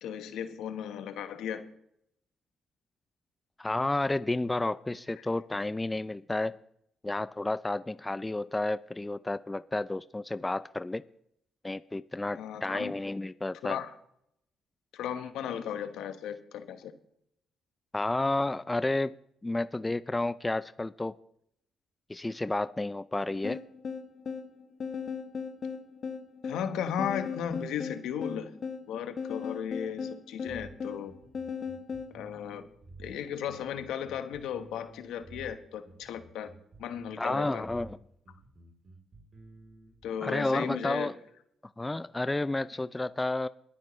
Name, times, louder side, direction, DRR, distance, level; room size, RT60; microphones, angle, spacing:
voice 1, 0.0-1.7 5.2-5.3 12.3-12.9 13.6-13.9 14.9-16.9 26.4-28.6 28.9-31.1 32.1-32.6 33.0-36.5 36.8-37.7 40.0-41.1, left 9 dB, 85° left, 8 dB, 1.2 m, -35 dB
voice 2, 3.6-6.6 7.0-11.0 11.6-13.8 17.9-19.2 19.4-21.1 22.1-23.6 37.2-38.0 40.2-41.1 41.8-43.5, left 2 dB, 15° left, 15 dB, 0.4 m, -31 dB
sound 1, 23.4-32.1, left 6 dB, 50° left, 1.0 m, -37 dB
sound 2, 30.5-40.1, right 3 dB, 45° right, 3.4 m, -52 dB
20.5 x 9.8 x 3.2 m, 0.75 s
cardioid pair, 90°, 0 cm